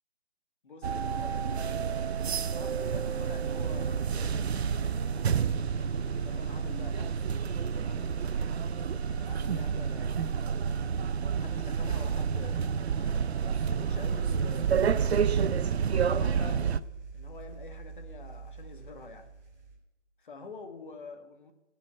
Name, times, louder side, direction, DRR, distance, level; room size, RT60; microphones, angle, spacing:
voice 1, 0.6-4.6 6.2-7.2 7.7-8.1 9.2-10.9 11.3-15.6 15.9-16.9 17.1-19.3 20.2-21.5, left 4 dB, 45° left, 1.5 m, -47 dB
sound 1, 0.8-16.8, right 6 dB, 65° right, 0.6 m, -29 dB
sound 2, 1.4-9.8, right 1 dB, 10° left, 0.8 m, -54 dB
sound 3, 8.9-19.8, right 4 dB, 15° right, 2.5 m, -51 dB
14.0 x 5.7 x 8.7 m
hypercardioid pair, 170°, 35 cm